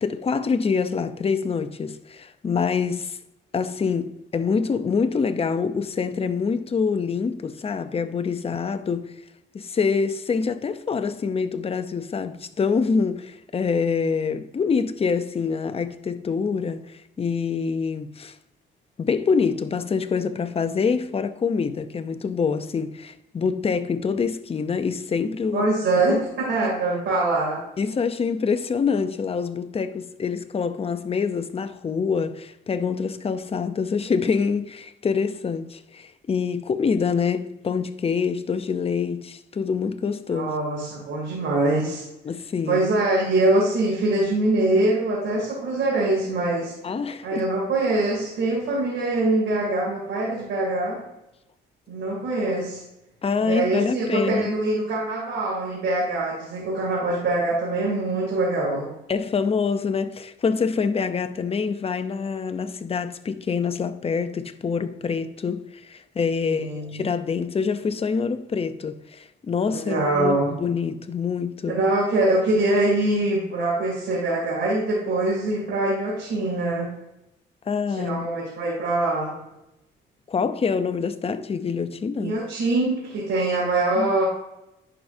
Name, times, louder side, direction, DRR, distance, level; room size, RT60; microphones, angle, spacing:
voice 1, 0.0-3.2 3.5-9.1 9.5-18.4 19.0-25.7 25.9-26.2 26.6-26.7 27.8-40.5 42.2-42.9 46.8-47.5 53.2-54.5 59.1-71.8 77.7-78.2 80.3-82.4 84.0-84.1, left 5 dB, 30° left, 0.6 m, -26 dB
voice 2, 25.5-27.6 40.3-42.0 42.7-46.7 47.2-51.0 51.9-52.8 53.4-58.9 66.5-67.0 69.7-70.5 71.7-76.9 78.0-79.4 82.2-84.3, right 2 dB, 70° right, 2.7 m, -23 dB
10.5 x 4.9 x 2.7 m
cardioid pair, 90°, 20 cm